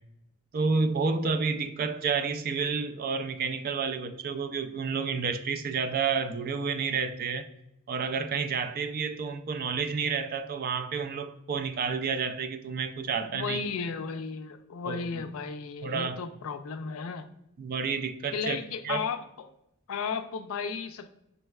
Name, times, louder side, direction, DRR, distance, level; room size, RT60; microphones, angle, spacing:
voice 1, 0.5-7.4 7.9-13.6 14.9-15.2 15.8-16.2 17.6-18.6 18.8-19.0, right 5 dB, 45° right, 0.3 m, -30 dB
voice 2, 13.2-17.3 18.3-19.5 19.9-21.1, left 5 dB, 70° left, 0.4 m, -34 dB
5.3 x 3.1 x 2.3 m
head